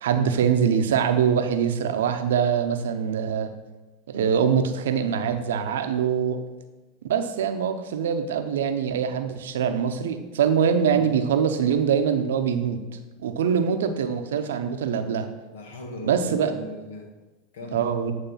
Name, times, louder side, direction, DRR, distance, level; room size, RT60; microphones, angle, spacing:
voice 1, 0.0-3.5 4.1-6.4 7.1-12.8 13.2-15.3 16.0-16.5 17.7-18.1, right 7 dB, 80° right, 8 dB, 0.7 m, -23 dB
voice 2, 15.5-17.1 17.5-17.9, left 1 dB, 80° left, 3 dB, 1.4 m, -38 dB
9.1 x 3.2 x 5.6 m, 1.2 s
hypercardioid pair, 100°, 0 cm